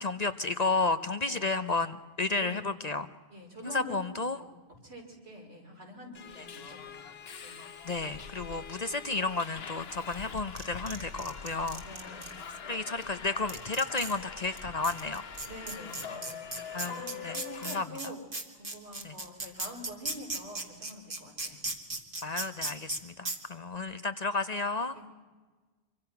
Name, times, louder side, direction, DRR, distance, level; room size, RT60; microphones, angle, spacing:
voice 1, 0.0-3.1 3.6-4.4 7.8-11.8 12.7-15.2 16.7-17.8 19.0-19.1 22.2-24.9, left 3 dB, 40° left, 11 dB, 0.8 m, -32 dB
voice 2, 1.3-1.7 2.4-2.7 3.3-4.0 4.2-4.5 4.8-7.6 11.8-12.4 15.5-18.2 18.5-21.6 24.9-25.1, equal, 70° right, -1 dB, 5.6 m, -46 dB
Subway metro underground, 6.1-17.8, left 6 dB, 65° left, 1.3 m, -44 dB
sound 1, 10.1-12.3 13.0-13.1 13.5-14.2 14.6-14.7 14.8-23.0 23.2-23.4, right 2 dB, 50° right, 2.4 m, -36 dB
25.5 x 24.5 x 5.9 m, 1.3 s
omnidirectional pair, 1.1 m